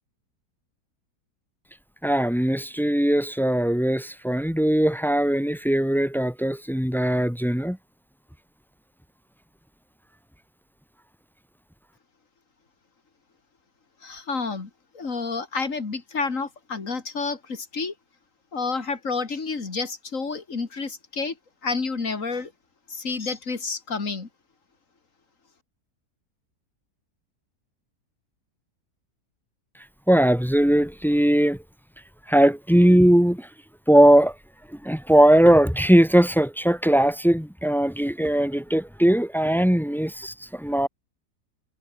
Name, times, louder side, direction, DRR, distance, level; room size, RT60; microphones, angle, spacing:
voice 1, 2.0-7.8 30.1-31.6 32.3-33.5 33.9-34.3 34.7-40.9, right 1 dB, ahead, 2.5 m, -19 dB
voice 2, 14.0-17.9 18.5-21.4 21.6-22.5 22.9-24.3, left 4 dB, 50° left, 2.9 m, -29 dB
omnidirectional pair, 1.7 m